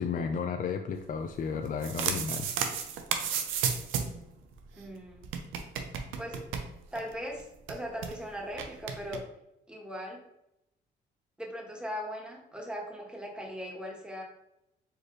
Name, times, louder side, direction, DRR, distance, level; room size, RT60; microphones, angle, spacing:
voice 1, 0.0-2.5, left 6 dB, 45° left, 6 dB, 0.4 m, -33 dB
sound 1, 1.6-4.2 4.5-4.6 4.8-4.9 5.2-7.1 7.4-7.5 7.7-8.1 8.6-9.2, right 7 dB, 90° right, 0.6 m, -33 dB
voice 2, 4.7-5.3 6.2-6.4 6.9-9.2 9.7-10.2 11.4-14.2, equal, 5° right, -1 dB, 1.3 m, -39 dB
4.7 x 3.2 x 3.1 m, 0.84 s
cardioid pair, 90°, 20 cm